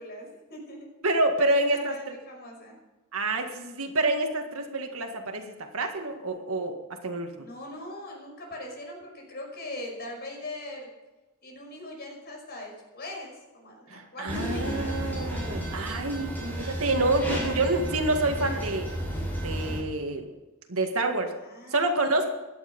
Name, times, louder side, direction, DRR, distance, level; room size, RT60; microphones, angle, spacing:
voice 1, 0.0-0.9 1.4-2.8 7.4-10.9 11.4-15.0 21.4-22.3, left 1 dB, 45° left, 0 dB, 5.6 m, -41 dB
voice 2, 1.0-2.1 3.1-6.8 7.0-7.3 13.9-18.9 19.4-20.2 20.7-21.3 21.7-22.3, right 2 dB, 70° right, 4 dB, 1.9 m, -27 dB
sound 1, 14.3-19.8, equal, 10° left, 5.6 m, -32 dB
17.0 x 11.5 x 5.4 m, 1.1 s
head